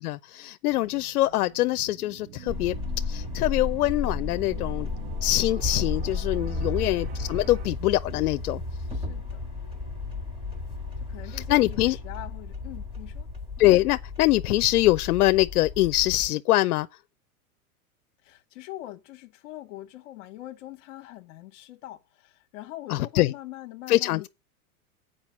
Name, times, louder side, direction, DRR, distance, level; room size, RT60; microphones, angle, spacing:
voice 1, 0.0-2.7 3.1-4.9 5.2-8.6 11.3-12.0 13.6-16.9 22.9-23.3 23.9-24.3, left 16 dB, 85° left, 0.6 m, -23 dB
sound 1, 0.7-7.7, right 11 dB, 40° right, 0.7 m, -45 dB
sound 2, 2.5-16.3, left 3 dB, 10° right, 1.8 m, -33 dB
voice 2, 6.7-7.1 8.9-9.5 11.0-13.3 18.2-24.3, left 15 dB, 55° left, 1.0 m, -43 dB
7.5 x 5.0 x 7.1 m
supercardioid pair, 140°, 44 cm